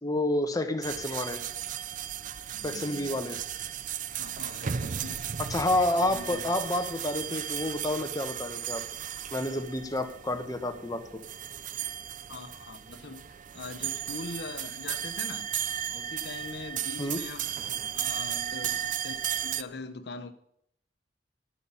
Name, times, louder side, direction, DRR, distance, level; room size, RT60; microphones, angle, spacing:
voice 1, 0.0-1.4 2.6-3.4 5.5-8.8 9.3-11.0 17.0-17.2, left 1 dB, 20° left, 1.1 m, -29 dB
sound 1, 0.8-19.6, right 9 dB, 45° right, 0.5 m, -35 dB
voice 2, 2.5-3.2 4.2-5.2 5.8-6.5 12.3-15.5 15.9-17.5 17.9-20.3, left 3 dB, 65° left, 1.0 m, -42 dB
13.0 x 10.5 x 5.6 m
head